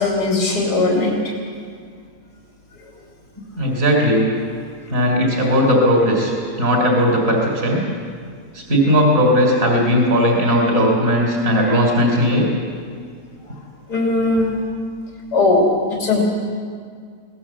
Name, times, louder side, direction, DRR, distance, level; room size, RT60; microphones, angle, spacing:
voice 1, 0.0-1.3 13.9-14.5 15.3-16.2, left 2 dB, 80° left, -2 dB, 3.7 m, -18 dB
voice 2, 3.6-4.3 4.9-6.3 6.6-7.8 8.5-12.5, equal, 50° right, -1 dB, 3.8 m, -17 dB
24.0 x 18.0 x 7.4 m, 2.1 s
omnidirectional pair, 1.7 m